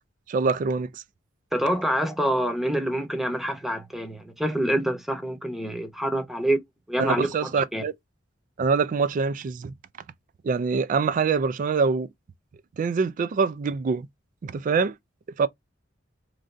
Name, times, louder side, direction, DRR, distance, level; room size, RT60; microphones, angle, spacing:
voice 1, 0.3-1.0 7.0-7.9 8.6-9.7 10.4-12.1 12.8-14.1 14.4-14.9 15.4-15.5, right 5 dB, 45° right, 0.3 m, -24 dB
voice 2, 1.5-6.6 6.9-7.8, right 1 dB, ahead, 0.7 m, -26 dB
3.1 x 2.5 x 2.5 m
head